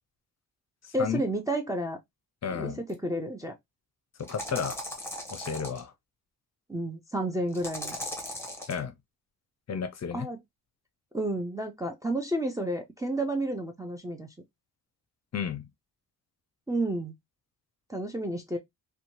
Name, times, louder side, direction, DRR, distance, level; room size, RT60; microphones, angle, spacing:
voice 1, 0.9-2.0 2.5-3.5 6.7-8.0 10.1-10.4 11.1-14.3 16.7-17.1 17.9-18.6, right 1 dB, 10° right, 0.4 m, -31 dB
voice 2, 2.4-2.8 4.2-4.8 5.3-5.9 8.7-8.9 9.7-10.3 15.3-15.6, left 7 dB, 45° left, 0.5 m, -32 dB
sound 1, 2.9-3.0 4.2-5.8 7.5-8.8, left 1 dB, 5° left, 0.8 m, -38 dB
2.6 x 2.2 x 2.8 m
wide cardioid pair, 125°, 37 cm